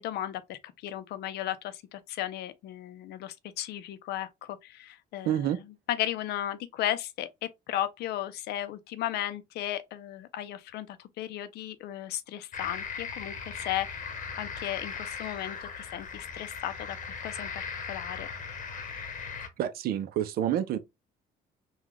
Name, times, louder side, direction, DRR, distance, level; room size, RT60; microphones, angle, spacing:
voice 1, 0.0-5.5 5.9-14.1 14.4-17.6 17.9-18.3, left 12 dB, 75° left, 0.6 m, -35 dB
voice 2, 5.2-5.6 19.6-20.8, right 10 dB, 65° right, 0.6 m, -28 dB
sound 1, 12.5-19.5, left 6 dB, 50° left, 0.9 m, -38 dB
3.7 x 2.4 x 3.0 m
cardioid pair, 110°, 17 cm